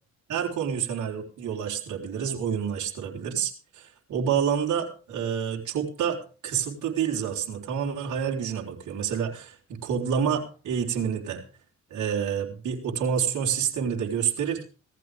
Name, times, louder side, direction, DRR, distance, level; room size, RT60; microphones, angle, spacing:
voice 1, 0.3-11.4 11.9-14.6, right 8 dB, 70° right, -1 dB, 4.3 m, -28 dB
18.5 x 14.5 x 3.6 m, 0.36 s
cardioid pair, 90°, 30 cm